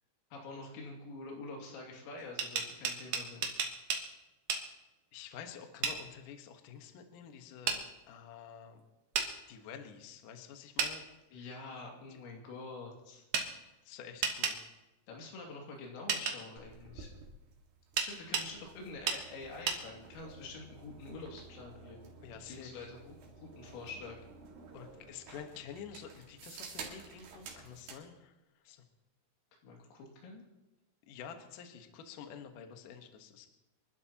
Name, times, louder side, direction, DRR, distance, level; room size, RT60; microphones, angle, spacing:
voice 1, 0.3-3.5 11.3-13.3 15.1-17.1 18.0-22.1 22.4-24.2 29.6-30.5, left 3 dB, 90° left, 0 dB, 5.2 m, -46 dB
sound 1, 2.2-4.0 4.5-4.6 5.8-6.0 7.7-7.8 9.1-9.3 10.8-10.9 13.3-13.5 14.2-14.6 16.1-16.4 18.0-18.5 19.1-19.2 19.7-19.8, right 6 dB, 80° right, 1.7 m, -32 dB
voice 2, 5.1-8.8 9.5-11.0 12.1-12.2 13.9-14.6 22.2-22.9 24.7-28.3 28.6-28.8 31.1-33.5, left 7 dB, 75° left, 5 dB, 1.9 m, -49 dB
sound 2, 16.6-28.0, right 4 dB, 60° right, 3.7 m, -52 dB
28.0 x 12.0 x 2.9 m, 1.0 s
omnidirectional pair, 5.8 m